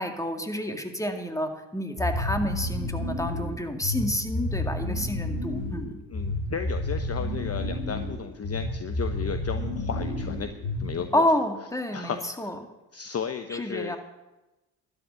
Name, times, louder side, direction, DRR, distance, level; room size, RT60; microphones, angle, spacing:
voice 1, 0.0-6.0 11.1-12.6 13.5-14.0, left 1 dB, 5° left, 5 dB, 2.1 m, -29 dB
sound 1, 2.0-11.2, left 1 dB, 75° left, 3.1 m, -31 dB
voice 2, 6.1-10.5 10.8-11.3 11.9-12.5 12.9-14.0, left 7 dB, 35° left, 8 dB, 0.9 m, -34 dB
12.5 x 6.9 x 9.7 m, 1.0 s
hypercardioid pair, 55°, 43 cm